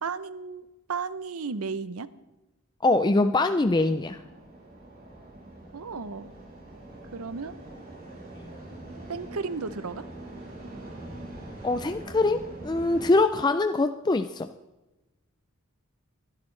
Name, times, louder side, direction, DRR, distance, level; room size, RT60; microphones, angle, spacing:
voice 1, 0.0-2.1 5.7-6.3 7.1-7.6 9.1-10.0, right 5 dB, 75° right, 15 dB, 0.7 m, -34 dB
voice 2, 2.8-4.2 11.6-14.5, left 2 dB, 20° left, 8 dB, 0.4 m, -23 dB
sound 1, 3.6-13.1, right 1 dB, 40° right, 5.2 m, -43 dB
23.0 x 11.5 x 3.3 m, 1.0 s
head